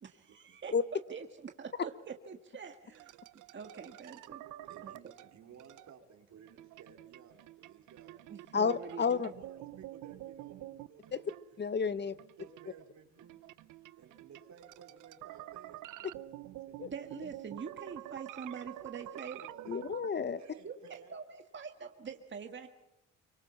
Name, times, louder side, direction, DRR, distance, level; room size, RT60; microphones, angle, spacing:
voice 1, 0.0-3.2 3.5-4.4 4.8-4.9 8.3-9.3 16.9-19.6 20.6-22.7, right 6 dB, 40° right, 6 dB, 1.6 m, -45 dB
sound 1, 2.9-6.0 6.5-11.7 12.1-20.1, right 15 dB, 85° right, 0.7 m, -48 dB
voice 2, 4.6-8.2 9.2-11.4 12.0-13.4 14.0-16.3 16.7-16.9 19.3-19.9 20.4-21.2, right 7 dB, 70° right, 4 dB, 4.2 m, -56 dB
voice 3, 8.5-9.3 11.1-11.2 11.6-12.1 16.8-16.9 19.7-20.4, left 5 dB, 35° left, 15 dB, 0.9 m, -31 dB
24.5 x 23.5 x 5.6 m, 0.93 s
cardioid pair, 90°, 30 cm